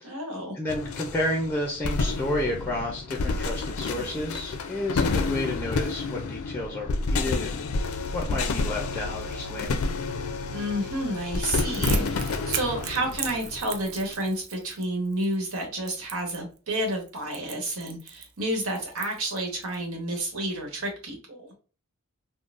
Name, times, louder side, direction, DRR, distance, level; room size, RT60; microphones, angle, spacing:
voice 1, 0.0-0.6 10.5-21.5, right 1 dB, 85° right, 1 dB, 1.2 m, -30 dB
voice 2, 0.5-7.6 8.1-9.8, left 1 dB, 10° left, 0 dB, 0.5 m, -31 dB
sound 1, 0.7-14.2, left 3 dB, 75° left, 0.4 m, -29 dB
Crackle, 11.5-19.8, right 8 dB, 50° right, 0.4 m, -38 dB
3.7 x 2.1 x 2.4 m, 0.36 s
head